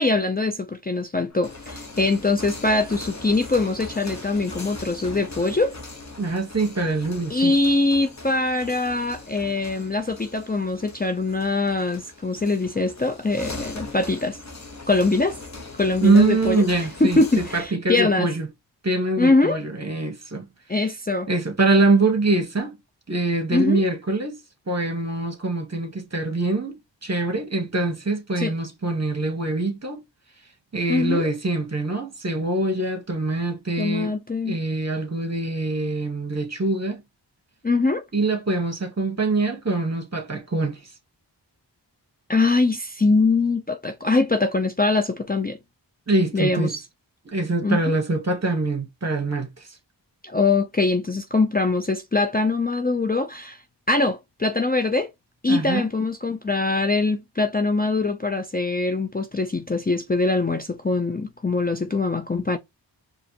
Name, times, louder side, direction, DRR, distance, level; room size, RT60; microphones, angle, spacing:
voice 1, 0.0-5.8 7.3-14.4 14.9-15.4 15.8-16.6 17.0-18.3 19.2-19.6 20.7-21.3 23.5-23.8 28.4-28.5 30.9-31.3 33.8-34.6 37.6-38.0 42.3-45.6 46.3-46.8 47.6-47.9 50.2-53.6 53.9-55.1 55.4-62.6, left 3 dB, 20° left, 0.5 m, -23 dB
sound 1, 1.3-17.7, left 2 dB, 40° left, 1.2 m, -40 dB
voice 2, 6.2-7.6 16.0-18.5 18.8-20.5 20.8-20.9 21.3-22.8 23.1-24.3 24.7-30.0 30.7-34.1 34.4-37.0 38.1-40.8 46.1-46.7 47.2-49.7 55.5-55.9, right 2 dB, 35° right, 1.5 m, -24 dB
4.9 x 2.7 x 2.9 m
wide cardioid pair, 45°, 44 cm